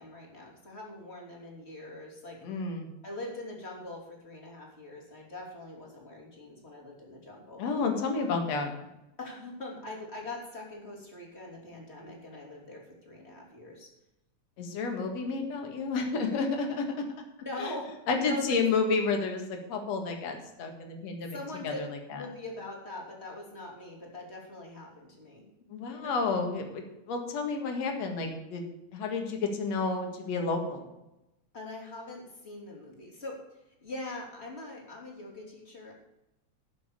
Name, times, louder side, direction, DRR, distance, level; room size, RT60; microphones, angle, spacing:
voice 1, 0.0-2.4 3.0-7.6 9.2-13.9 17.4-18.6 21.3-21.8 22.1-25.4 26.0-26.1 31.5-33.4 33.8-35.9, left 2 dB, 20° left, -1 dB, 3.3 m, -42 dB
voice 2, 2.4-2.9 7.6-8.7 14.6-16.9 17.6-17.7 18.1-21.4 21.6-22.2 25.7-28.6 28.9-30.9, left 4 dB, 65° left, 3 dB, 2.9 m, -31 dB
12.5 x 7.4 x 6.8 m, 0.92 s
omnidirectional pair, 3.3 m